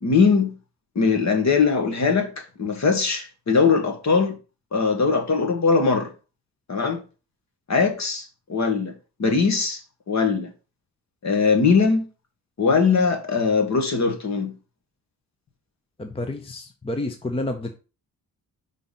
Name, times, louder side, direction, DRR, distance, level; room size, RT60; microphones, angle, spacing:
voice 1, 0.0-0.6 0.9-4.4 4.7-6.1 6.7-7.0 7.7-8.9 9.2-9.8 10.1-10.5 11.2-12.0 12.6-14.5, left 5 dB, 40° left, 1.6 m, -21 dB
voice 2, 16.0-17.7, left 2 dB, 15° left, 0.7 m, -29 dB
5.8 x 3.9 x 5.7 m
cardioid pair, 125°, 41 cm